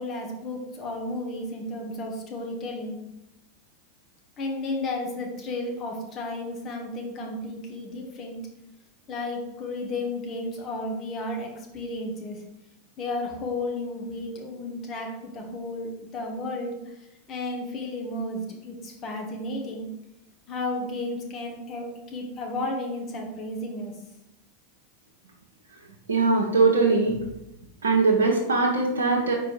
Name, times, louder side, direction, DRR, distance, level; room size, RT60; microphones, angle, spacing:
voice 1, 0.0-3.0 4.4-8.4 9.1-12.4 13.0-16.8 17.3-19.9 20.5-23.9, left 2 dB, 40° left, 0 dB, 1.7 m, -33 dB
voice 2, 26.1-27.2 27.8-29.3, right 3 dB, 85° right, -1 dB, 0.9 m, -21 dB
5.1 x 4.7 x 4.7 m, 0.89 s
hypercardioid pair, 95°, 0 cm